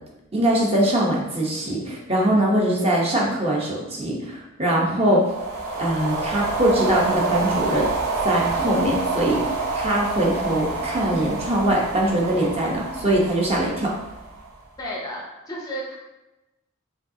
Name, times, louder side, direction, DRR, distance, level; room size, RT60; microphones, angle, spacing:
voice 1, 0.3-5.2 5.8-7.9 8.2-13.9, right 1 dB, 30° right, -3 dB, 0.8 m, -22 dB
sound 1, 5.2-14.6, right 3 dB, 80° right, 0.9 m, -27 dB
voice 2, 14.8-15.9, equal, 20° left, -3 dB, 0.6 m, -32 dB
5.1 x 3.2 x 2.7 m, 0.99 s
head